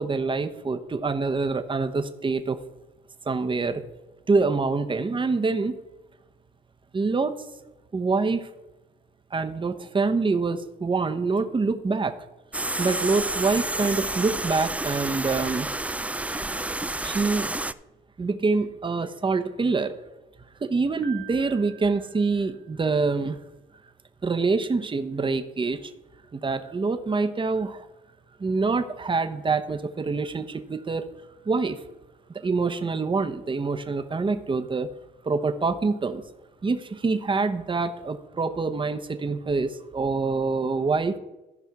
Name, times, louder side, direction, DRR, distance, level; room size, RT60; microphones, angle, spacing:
voice 1, 0.0-2.6 3.3-3.8 4.3-5.8 6.9-7.4 7.9-8.5 9.3-12.1 12.8-15.7 17.0-17.5 18.2-20.0 20.6-23.4 24.2-25.9 26.3-27.9 28.4-31.1 31.4-31.8 32.3-34.9 35.2-36.3 36.6-41.2, right 4 dB, 25° right, 8 dB, 0.9 m, -25 dB
sound 1, 12.5-17.7, right 2 dB, 5° right, 0.3 m, -30 dB
Piano, 21.0-23.1, right 10 dB, 10° left, 1.2 m, -47 dB
14.5 x 5.3 x 4.7 m, 1.0 s
cardioid pair, 90°, 20 cm